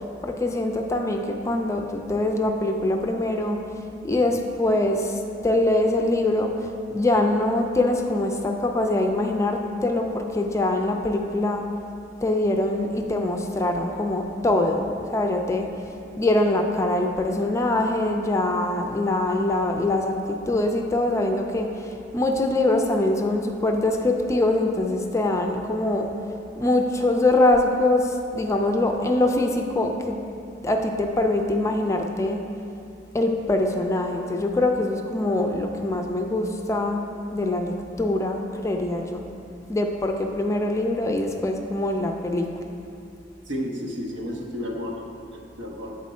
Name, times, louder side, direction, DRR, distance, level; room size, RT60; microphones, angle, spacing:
voice 1, 0.2-3.6 4.0-11.6 12.2-15.7 16.2-26.1 26.6-30.2 30.6-32.4 33.1-37.0 37.3-39.3 39.7-42.7, left 2 dB, 15° left, 3 dB, 0.4 m, -23 dB
voice 2, 43.4-45.0 45.3-46.0, equal, 85° right, -1 dB, 0.9 m, -32 dB
7.2 x 4.3 x 4.2 m, 2.7 s
head